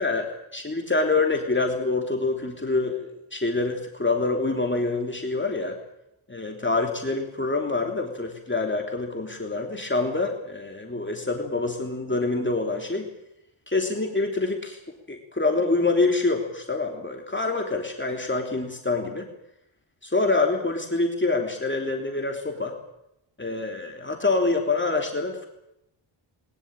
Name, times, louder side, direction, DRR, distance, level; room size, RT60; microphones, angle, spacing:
voice 1, 0.0-5.8 6.3-13.0 13.7-14.8 15.1-19.3 20.0-22.8 23.4-25.5, left 3 dB, 20° left, 2 dB, 3.2 m, -26 dB
21.0 x 19.5 x 9.0 m, 0.84 s
wide cardioid pair, 80°, 49 cm